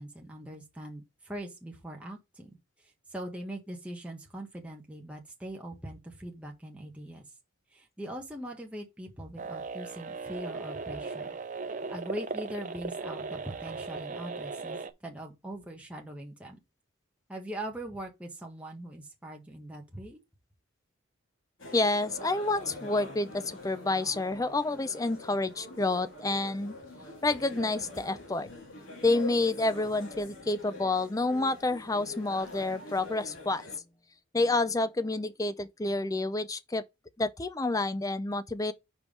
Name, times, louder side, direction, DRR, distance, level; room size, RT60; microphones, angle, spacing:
voice 1, 0.0-7.2 7.7-11.3 11.9-16.6 17.3-20.2, right 1 dB, 5° right, 1.3 m, -41 dB
sound 1, 9.4-14.9, right 4 dB, 35° right, 0.6 m, -37 dB
sound 2, 21.6-33.8, left 2 dB, 70° left, 2.5 m, -44 dB
voice 2, 21.7-26.7 27.2-28.5 29.0-33.7 34.3-36.8 37.2-38.7, left 2 dB, 15° left, 0.5 m, -29 dB
5.3 x 4.6 x 5.3 m
head